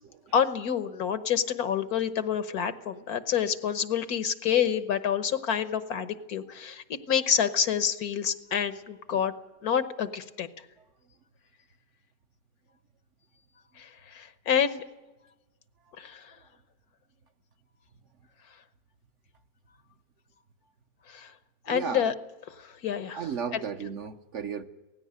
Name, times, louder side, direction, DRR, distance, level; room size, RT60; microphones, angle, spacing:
voice 1, 0.3-9.3 9.6-10.5 13.8-14.8 16.0-16.2 21.1-21.3 21.6-22.1 22.8-23.2 23.5-23.6, left 8 dB, 80° left, 11 dB, 1.5 m, -28 dB
voice 2, 21.7-22.1 23.1-24.7, right 7 dB, 55° right, 7 dB, 1.2 m, -35 dB
17.5 x 16.0 x 9.6 m, 1.1 s
omnidirectional pair, 1.6 m